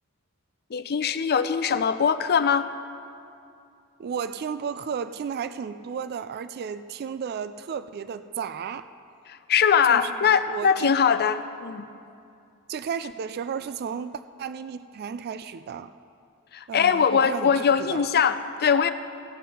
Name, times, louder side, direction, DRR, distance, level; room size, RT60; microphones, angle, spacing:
voice 1, 0.7-2.7 9.3-11.9 16.5-18.9, left 7 dB, 45° left, 12 dB, 0.5 m, -22 dB
voice 2, 4.0-8.9 9.8-10.9 12.7-15.9 16.7-18.1, right 6 dB, 45° right, 12 dB, 0.3 m, -33 dB
17.0 x 7.5 x 5.5 m, 2.5 s
head